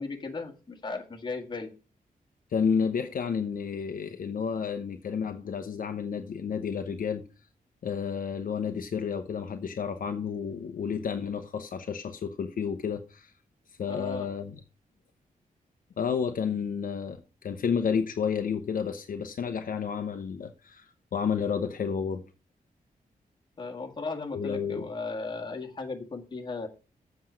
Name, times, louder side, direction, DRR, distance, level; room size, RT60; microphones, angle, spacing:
voice 1, 0.0-1.7 13.9-14.3 23.6-26.7, left 3 dB, 30° left, 1.8 m, -36 dB
voice 2, 2.5-7.2 7.8-13.3 13.8-14.6 16.0-17.2 17.4-22.2 24.3-24.9, left 6 dB, 65° left, 0.8 m, -31 dB
7.7 x 5.8 x 6.2 m
wide cardioid pair, 150°, 15 cm